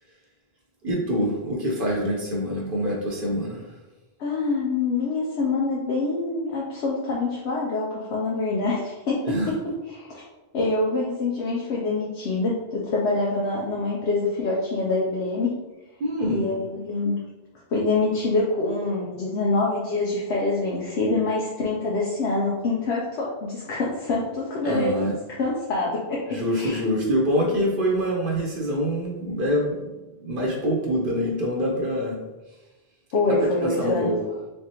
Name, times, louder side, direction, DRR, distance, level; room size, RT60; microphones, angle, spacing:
voice 1, 0.8-3.7 9.3-9.5 16.0-16.4 24.6-25.1 26.3-29.9 30.2-32.2 33.3-34.2, equal, 60° right, -2 dB, 0.9 m, -25 dB
voice 2, 4.2-10.2 10.5-15.5 16.3-17.2 17.7-26.8 33.1-34.1, left 3 dB, 85° left, -4 dB, 0.9 m, -25 dB
3.5 x 3.3 x 2.8 m, 1.1 s
omnidirectional pair, 1.1 m